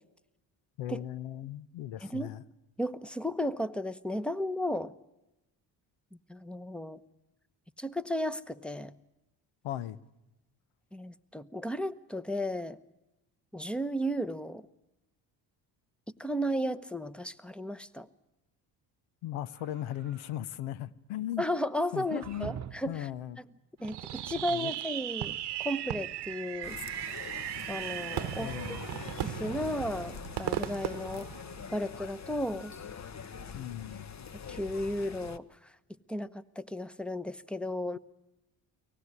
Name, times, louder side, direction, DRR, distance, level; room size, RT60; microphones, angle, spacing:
voice 1, 0.8-2.4 9.6-10.0 19.2-21.4 21.9-22.5 22.9-23.4 24.5-24.7 28.3-28.8 33.5-34.1, left 12 dB, 75° left, 1.0 m, -37 dB
voice 2, 2.0-2.4 2.8-4.9 6.3-7.0 7.8-8.9 10.9-12.8 13.5-14.6 16.2-18.1 21.4-23.1 23.4-23.5 23.8-26.8 27.1-27.3 27.7-28.5 29.2-31.3 31.7-32.7 34.5-35.7 36.1-38.0, equal, ahead, 1.0 m, -34 dB
sound 1, 19.5-20.4 21.8-23.0, right 8 dB, 35° right, 1.0 m, -45 dB
Fireworks, 23.8-32.0, right 12 dB, 55° right, 1.0 m, -37 dB
sound 2, 26.6-35.4, left 6 dB, 35° left, 1.0 m, -44 dB
23.5 x 18.0 x 9.7 m
supercardioid pair, 65°, 49 cm